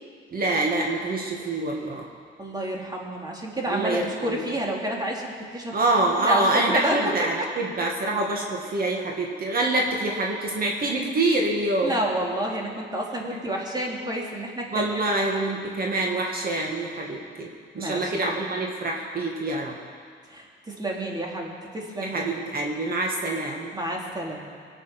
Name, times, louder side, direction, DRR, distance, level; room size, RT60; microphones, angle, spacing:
voice 1, 0.3-2.0 3.7-4.4 5.7-11.9 13.2-13.4 14.7-17.5 17.7-19.7 22.0-23.7, right 2 dB, 50° right, -1 dB, 2.1 m, -26 dB
voice 2, 2.4-5.8 6.2-7.1 7.4-7.5 11.8-14.9 17.7-18.2 20.3-22.3 23.7-24.4, right 1 dB, 20° right, -1 dB, 3.3 m, -30 dB
22.5 x 8.1 x 6.1 m, 2.1 s
cardioid pair, 90°, 20 cm